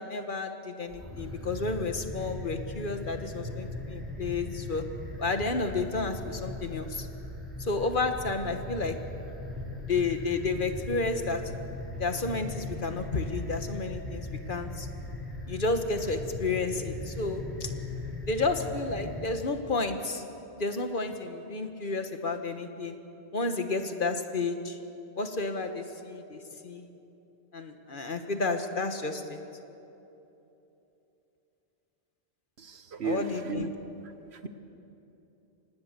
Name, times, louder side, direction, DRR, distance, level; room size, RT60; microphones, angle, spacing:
voice 1, 0.0-4.8 5.2-7.1 7.6-9.0 9.9-11.4 12.0-14.9 15.5-17.7 18.3-20.2 20.6-23.0 23.3-24.8 25.2-26.9 27.5-29.4 33.0-33.7, left 3 dB, 55° left, 7 dB, 1.5 m, -31 dB
sound 1, 0.8-19.2, left 2 dB, ahead, 5.8 m, -39 dB
voice 2, 32.6-33.7 34.3-34.5, right 4 dB, 80° right, 9 dB, 1.4 m, -34 dB
25.5 x 18.5 x 6.8 m, 2.9 s
omnidirectional pair, 1.1 m